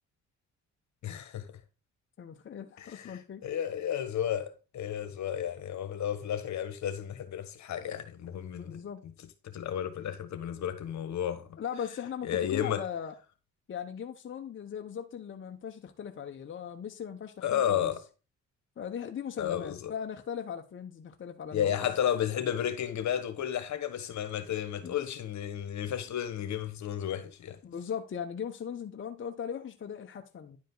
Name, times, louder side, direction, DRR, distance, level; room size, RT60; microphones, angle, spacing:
voice 1, 1.0-1.5 2.8-8.8 9.4-11.5 12.2-12.8 17.4-18.0 19.4-19.9 21.5-27.6, left 10 dB, 65° left, 1.4 m, -32 dB
voice 2, 2.2-3.4 8.5-9.0 11.6-13.1 13.7-17.9 18.8-21.9 24.8-24.9 27.6-30.6, left 8 dB, 40° left, 0.9 m, -39 dB
10.5 x 5.0 x 3.9 m
cardioid pair, 90°, 30 cm